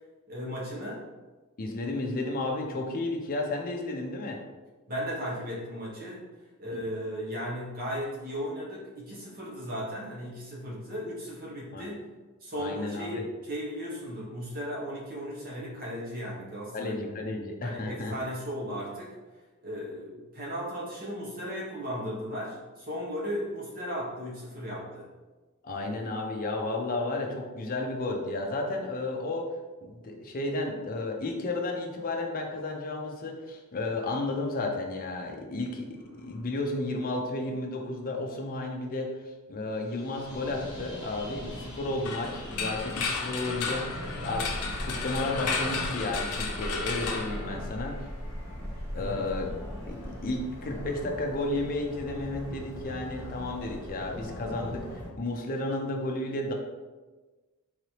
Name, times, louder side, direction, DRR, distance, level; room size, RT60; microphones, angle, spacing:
voice 1, 0.3-1.0 4.9-6.2 6.6-12.0 12.4-17.0 17.6-19.1 19.6-25.1 48.9-49.2, equal, 40° right, -5 dB, 1.1 m, -36 dB
voice 2, 1.6-4.4 6.7-6.8 11.7-11.8 12.6-13.2 16.7-18.1 25.6-29.5 29.8-48.0 48.9-49.5 49.8-56.5, left 2 dB, 40° left, 1 dB, 0.5 m, -33 dB
Airplane Flying Airport, 36.0-38.2 39.8-51.4 52.9-53.4, left 1 dB, 20° left, 0.9 m, -52 dB
sound 1, 40.2-55.1, equal, 15° right, 1.1 m, -40 dB
sound 2, 42.0-48.0, left 4 dB, 85° left, 0.6 m, -33 dB
3.9 x 3.2 x 2.9 m, 1.3 s
head